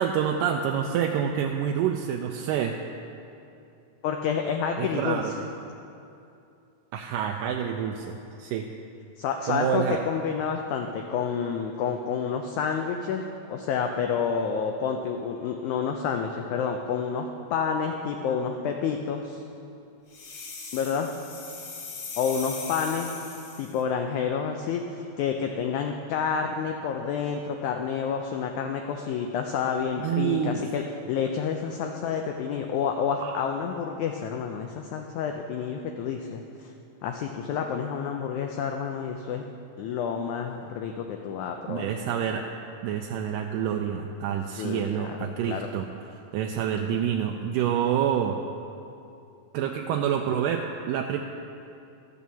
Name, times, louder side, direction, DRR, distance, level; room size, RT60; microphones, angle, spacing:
voice 1, 0.0-2.8 4.8-5.3 6.9-8.7 9.5-10.0 30.0-30.6 33.2-33.5 41.7-42.5 42.8-48.4 49.5-51.2, right 8 dB, 80° right, 3 dB, 2.1 m, -27 dB
voice 2, 4.0-5.5 9.2-19.4 20.7-21.1 22.2-23.1 23.6-36.7 37.0-39.4 39.8-42.0 42.3-42.4 44.6-45.7, left 6 dB, 80° left, 4 dB, 1.7 m, -29 dB
sound 1, 20.1-23.8, left 4 dB, 55° left, 1.9 m, -39 dB
12.5 x 6.1 x 7.0 m, 2.7 s
omnidirectional pair, 4.0 m